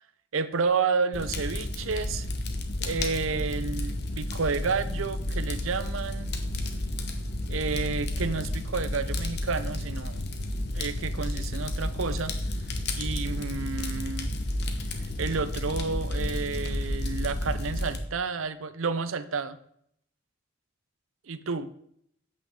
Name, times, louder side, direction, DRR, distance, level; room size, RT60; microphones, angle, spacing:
voice 1, 0.3-2.3 2.8-6.3 7.5-10.3 10.7-12.3 13.0-14.3 15.0-19.6 21.3-21.7, right 4 dB, 75° right, 13 dB, 0.6 m, -30 dB
Fire, 1.1-18.0, left 1 dB, 50° left, 1.1 m, -31 dB
8.6 x 8.4 x 3.7 m, 0.70 s
head